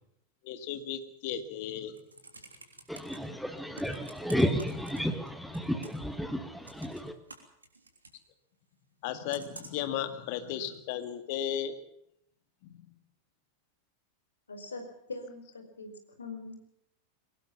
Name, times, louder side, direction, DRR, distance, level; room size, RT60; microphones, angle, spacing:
voice 1, 0.4-2.0 9.0-11.8 12.6-12.9, left 9 dB, 50° left, 2.1 m, -35 dB
Computer keyboard, 1.7-3.2 3.7-5.3 5.5-6.1 6.6-8.2 9.3-9.9 10.6-10.7, right 3 dB, 80° right, 3.4 m, -49 dB
voice 2, 2.9-7.2, equal, ahead, 1.8 m, -32 dB
voice 3, 14.5-15.9 16.2-16.6, left 3 dB, 75° left, 4.5 m, -42 dB
22.5 x 19.0 x 7.2 m
figure-of-eight pair, 90°, 0 cm